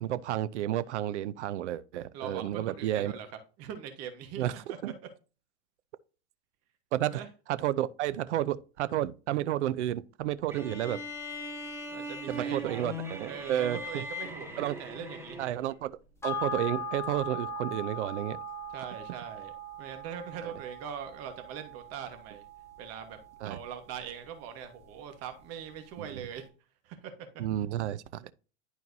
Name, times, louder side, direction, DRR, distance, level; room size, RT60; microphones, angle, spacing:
voice 1, 0.0-3.1 4.4-4.5 4.8-4.9 6.9-7.2 7.5-11.0 12.3-14.1 14.6-14.8 15.4-15.9 16.2-18.4 23.4-23.6 26.0-26.2 27.4-28.3, right 12 dB, 80° right, 0.6 m, -31 dB
voice 2, 2.1-3.3 3.6-4.4 7.1-7.3 11.9-12.9 13.3-15.4 18.7-19.5 19.8-22.4 22.8-23.2 23.4-26.5 26.8-27.1, right 8 dB, 45° right, 1.4 m, -41 dB
sound 1, 10.5-15.8, equal, 10° right, 2.7 m, -39 dB
sound 2, 16.2-25.0 25.3-25.4, left 1 dB, 10° left, 1.9 m, -40 dB
11.0 x 4.5 x 2.7 m
hypercardioid pair, 115°, 34 cm